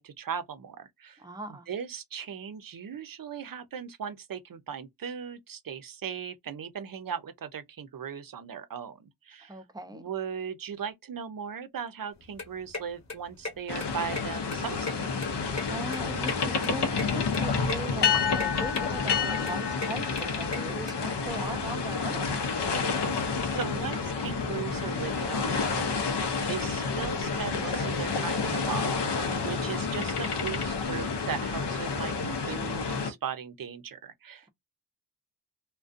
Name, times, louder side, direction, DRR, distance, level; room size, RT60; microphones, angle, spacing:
voice 1, 0.0-1.2 1.7-9.6 9.9-14.9 23.4-34.5, right 7 dB, 55° right, 0.5 m, -38 dB
voice 2, 1.2-1.7 9.5-10.0 15.7-22.3, right 1 dB, 10° right, 0.5 m, -39 dB
sound 1, 12.1-20.9, left 3 dB, 40° left, 0.9 m, -39 dB
sound 2, 13.7-33.1, left 5 dB, 85° left, 0.6 m, -29 dB
2.4 x 2.1 x 2.4 m
wide cardioid pair, 80°, 40 cm